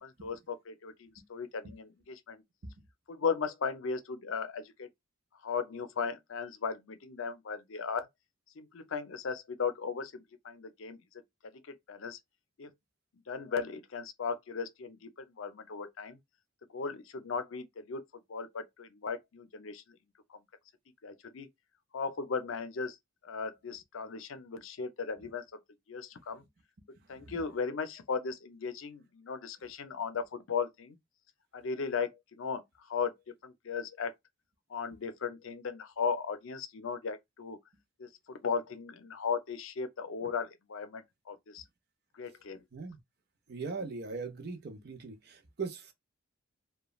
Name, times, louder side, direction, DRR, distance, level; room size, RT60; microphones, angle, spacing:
voice 1, 0.0-2.4 3.1-4.9 5.4-8.1 8.6-11.0 11.9-12.2 12.6-12.7 13.3-16.2 16.7-18.0 18.3-19.8 21.0-21.5 21.9-23.0 23.2-25.4 25.9-26.4 27.1-31.0 31.5-32.6 32.9-33.1 33.4-34.1 34.7-37.6 38.0-41.6 42.1-42.6, left 5 dB, 70° left, 0.5 m, -36 dB
voice 2, 43.5-45.9, right 4 dB, 50° right, 0.6 m, -40 dB
3.0 x 2.2 x 2.3 m
head